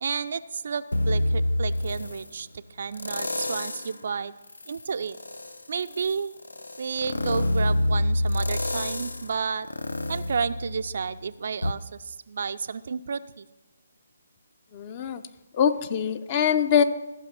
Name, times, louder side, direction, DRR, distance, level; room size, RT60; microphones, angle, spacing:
voice 1, 0.0-4.3 4.7-5.2 5.7-6.3 6.8-9.7 10.1-13.5, right 6 dB, 50° right, 13 dB, 0.3 m, -31 dB
sound 1, 0.9-2.3 2.9-4.0 4.5-11.2 11.6-11.7, left 1 dB, 70° left, 0.6 m, -28 dB
voice 2, 14.7-15.2 15.5-16.8, left 8 dB, 30° left, 11 dB, 0.5 m, -23 dB
14.0 x 5.6 x 5.6 m, 1.1 s
figure-of-eight pair, 140°, 0 cm